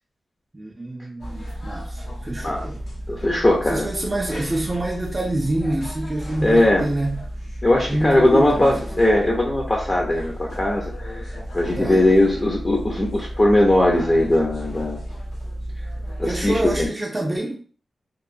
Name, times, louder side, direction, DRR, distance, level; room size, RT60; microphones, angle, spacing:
voice 1, 0.5-2.8 3.7-7.3 7.7-8.8 11.8-12.0 16.3-17.6, right 1 dB, 25° right, 0.4 m, -27 dB
sound 1, 1.2-16.9, equal, 85° left, 1.0 m, -33 dB
voice 2, 3.1-3.9 6.4-6.8 7.6-15.0 16.2-16.9, left 1 dB, 35° left, 0.5 m, -19 dB
2.9 x 2.0 x 2.5 m
wide cardioid pair, 95°, 0 cm